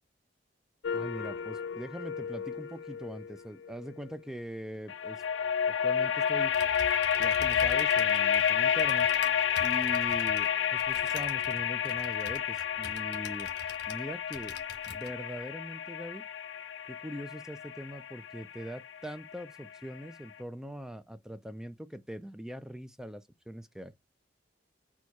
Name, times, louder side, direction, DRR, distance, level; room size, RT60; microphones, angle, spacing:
sound 1, 0.8-4.1 4.9-19.8, left 8 dB, 80° left, 0.4 m, -30 dB
voice 1, 0.9-5.2 5.7-6.6 7.2-9.1 9.6-13.5 13.9-14.6 14.9-16.2 16.9-23.9, equal, 5° right, 0.4 m, -42 dB
Typing, 6.4-14.1 14.3-15.1, left 5 dB, 65° left, 1.1 m, -46 dB
4.4 x 2.3 x 4.5 m
head